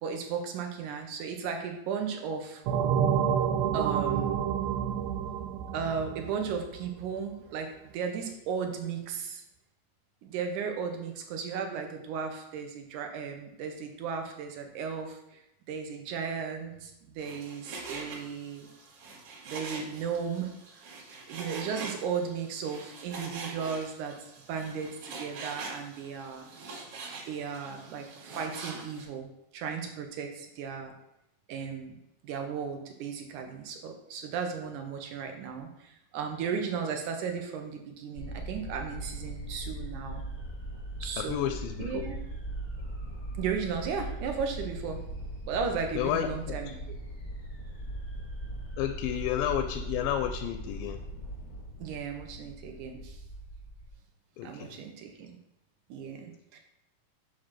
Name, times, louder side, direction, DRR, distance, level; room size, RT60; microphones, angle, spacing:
voice 1, 0.0-2.6 3.7-4.4 5.7-9.4 10.2-15.4 15.7-18.7 19.5-20.5 21.3-24.2 24.5-26.5 27.3-30.9 31.5-32.0 32.2-40.2 41.0-41.5 41.8-42.2 43.4-45.0 45.5-46.8 51.8-53.2 54.4-55.4 55.9-56.6, right 6 dB, 70° right, 4 dB, 2.1 m, -35 dB
sound 1, 2.7-7.1, right 8 dB, 85° right, 2.3 m, -29 dB
Frying (food), 17.2-29.1, right 3 dB, 55° right, 3.4 m, -44 dB
sound 2, 38.1-53.9, right 1 dB, 30° left, 0.8 m, -39 dB
voice 2, 41.2-42.0 46.0-46.3 48.8-51.0 54.4-54.8, left 11 dB, 85° left, 8 dB, 2.2 m, -31 dB
8.7 x 3.0 x 6.0 m, 0.83 s
omnidirectional pair, 4.1 m